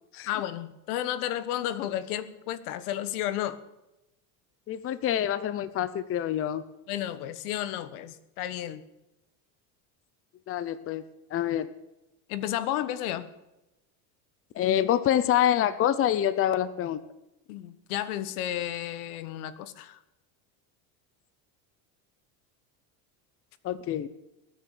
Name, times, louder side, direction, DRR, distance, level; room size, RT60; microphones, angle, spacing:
voice 1, 0.2-3.6 6.9-8.8 12.3-13.3 17.5-20.0, left 12 dB, 85° left, 14 dB, 1.5 m, -32 dB
voice 2, 4.7-6.6 10.5-11.0 11.3-11.7 14.6-17.0 23.6-24.1, left 11 dB, 30° left, 15 dB, 0.8 m, -26 dB
20.5 x 9.5 x 6.9 m, 0.93 s
cardioid pair, 145°, 43 cm